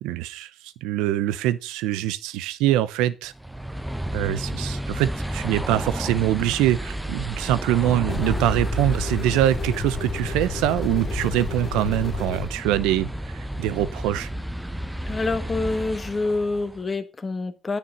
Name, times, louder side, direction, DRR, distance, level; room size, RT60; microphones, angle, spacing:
voice 1, 0.0-0.5 0.8-3.3 4.1-13.1 13.3-14.3, right 13 dB, 90° right, 0.6 m, -24 dB
sound 1, 3.3-16.8, right 1 dB, 10° right, 0.9 m, -31 dB
sound 2, 8.1-12.5, left 4 dB, 65° left, 2.3 m, -32 dB
voice 2, 15.1-17.8, left 3 dB, 35° left, 1.5 m, -27 dB
9.6 x 6.8 x 5.5 m
supercardioid pair, 60°, 0 cm